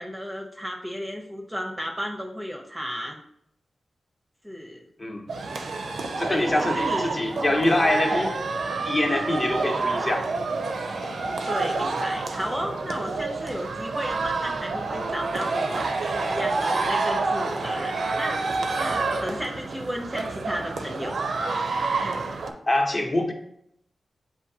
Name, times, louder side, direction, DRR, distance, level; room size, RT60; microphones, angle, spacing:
voice 1, 0.0-3.2 4.4-4.9 6.3-7.2 9.1-9.3 11.5-18.4 18.7-21.2 21.9-22.2, equal, 10° right, 1 dB, 0.5 m, -34 dB
sound 1, 5.3-22.5, right 3 dB, 75° right, 0.5 m, -28 dB
voice 2, 6.2-8.3 8.8-10.3 22.7-23.3, left 1 dB, 35° left, 2 dB, 0.7 m, -24 dB
6.9 x 2.6 x 2.7 m, 0.73 s
wide cardioid pair, 95°, 0 cm